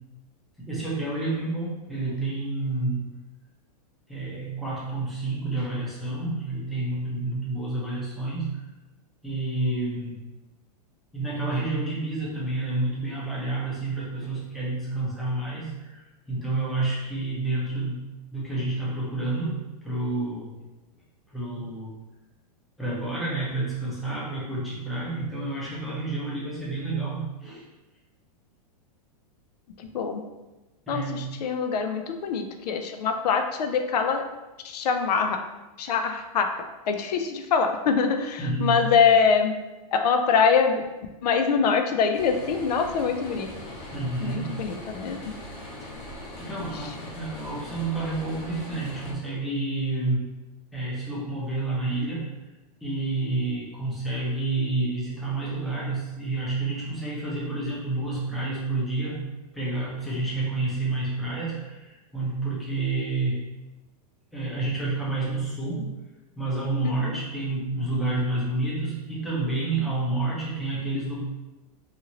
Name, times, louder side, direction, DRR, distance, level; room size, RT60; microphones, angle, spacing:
voice 1, 0.6-3.0 4.1-8.5 9.2-10.2 11.1-20.5 21.3-21.9 22.8-27.6 30.9-31.3 38.4-38.8 43.9-44.5 45.8-45.9 46.4-50.2 50.7-52.3 52.8-59.2 59.5-63.5 64.3-65.9 66.4-71.2, right 2 dB, ahead, -8 dB, 0.6 m, -29 dB
voice 2, 29.8-30.2 30.9-34.2 34.6-35.4 35.8-36.5 36.9-39.5 39.9-40.8 41.2-43.5 44.2-45.3 46.7-46.9 66.8-67.2, left 6 dB, 90° left, 6 dB, 0.4 m, -24 dB
sound 1, 42.1-49.1, left 1 dB, 45° left, 0.9 m, -40 dB
2.8 x 2.5 x 2.8 m, 1.1 s
supercardioid pair, 160°, 20 cm